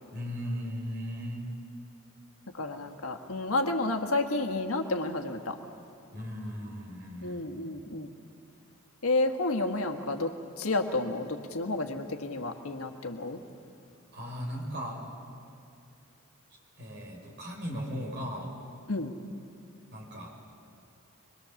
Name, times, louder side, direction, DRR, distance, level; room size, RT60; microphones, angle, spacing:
voice 1, 0.1-1.4 6.1-7.4 14.1-15.1 16.8-18.6 19.9-20.3, equal, 50° right, 0 dB, 4.5 m, -37 dB
voice 2, 2.6-5.6 7.2-8.1 9.0-10.3 10.6-13.4 18.9-19.1, left 2 dB, 80° left, 5 dB, 1.6 m, -30 dB
23.5 x 23.0 x 7.1 m, 2.5 s
head